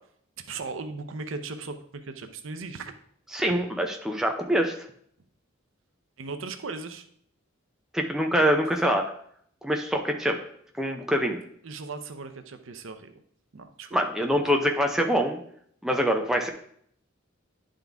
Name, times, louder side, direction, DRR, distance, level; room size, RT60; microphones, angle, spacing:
voice 1, 0.5-2.9 3.4-3.5 6.2-7.1 11.6-13.1 13.5-14.4, right 4 dB, 75° right, 8 dB, 0.6 m, -38 dB
voice 2, 3.3-4.8 7.9-9.1 9.6-10.4 10.8-11.4 13.9-15.4 15.8-16.5, equal, 5° right, 2 dB, 0.6 m, -24 dB
10.5 x 3.8 x 3.5 m, 0.65 s
head